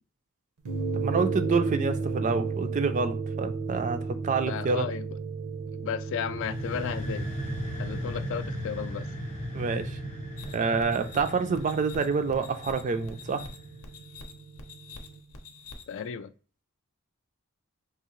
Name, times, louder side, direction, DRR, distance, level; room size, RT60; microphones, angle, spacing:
sound 1, 0.7-15.2, right 4 dB, 80° right, 0.6 m, -35 dB
voice 1, 0.9-4.9 9.5-10.0 10.5-13.4, right 4 dB, 35° right, 0.3 m, -27 dB
voice 2, 4.5-5.1 5.7-7.3 7.8-9.0 15.9-16.3, left 7 dB, 55° left, 0.3 m, -34 dB
sound 2, 6.3-13.9, equal, 30° left, 0.7 m, -37 dB
sound 3, 10.4-16.1, left 3 dB, 80° left, 0.7 m, -47 dB
3.5 x 2.7 x 3.0 m
head